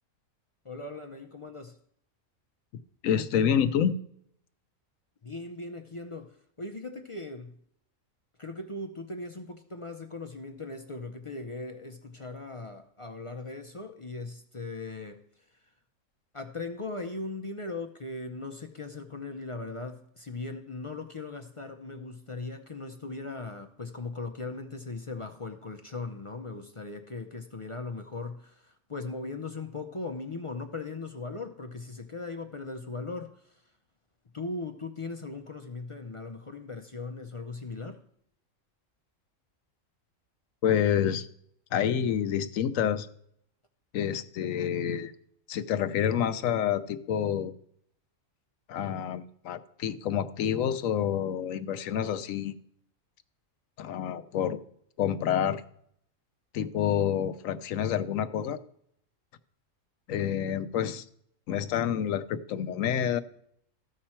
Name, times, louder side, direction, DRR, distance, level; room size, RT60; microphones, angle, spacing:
voice 1, 0.6-1.8 5.2-7.5 8.4-15.2 16.3-33.6 34.3-38.0, left 3 dB, 35° left, 0.5 m, -39 dB
voice 2, 3.0-3.9 40.6-41.3 41.7-43.1 43.9-45.1 45.5-47.5 48.7-52.6 53.8-54.6 55.0-55.6 56.5-58.6 60.1-61.0 61.5-63.2, left 9 dB, 80° left, 1.0 m, -28 dB
14.0 x 6.0 x 4.4 m
omnidirectional pair, 1.4 m